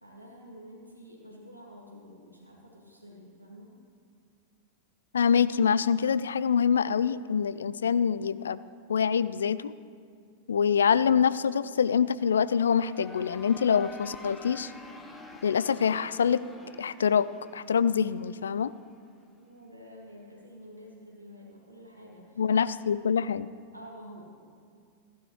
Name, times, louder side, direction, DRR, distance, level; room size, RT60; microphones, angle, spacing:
voice 1, 0.0-3.8 19.3-22.5 22.7-23.0 23.7-24.2, equal, 90° right, -3 dB, 2.2 m, -49 dB
voice 2, 5.1-8.6 8.9-9.7 10.5-14.7 15.4-16.4 16.8-17.3 17.5-18.7 22.4-23.5, left 7 dB, 70° left, 17 dB, 0.3 m, -25 dB
sound 1, 12.2-18.9, left 2 dB, 15° left, 1.2 m, -48 dB
15.0 x 11.5 x 3.2 m, 2.1 s
figure-of-eight pair, 90°, 0 cm